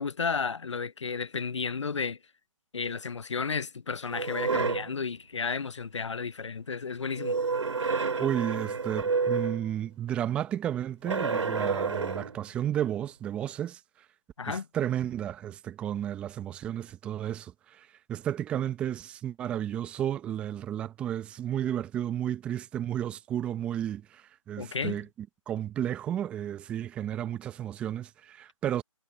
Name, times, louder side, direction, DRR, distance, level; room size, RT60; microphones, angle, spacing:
voice 1, 0.0-2.2 2.7-7.4 14.4-14.7 24.6-25.0, left 5 dB, 60° left, 0.8 m, -32 dB
sound 1, 4.1-4.9 7.1-9.7 11.0-12.4, right 4 dB, 60° right, 2.8 m, -29 dB
voice 2, 8.2-13.8 14.5-25.1 25.5-28.8, right 10 dB, 5° right, 0.9 m, -32 dB
figure-of-eight pair, 155°, 17 cm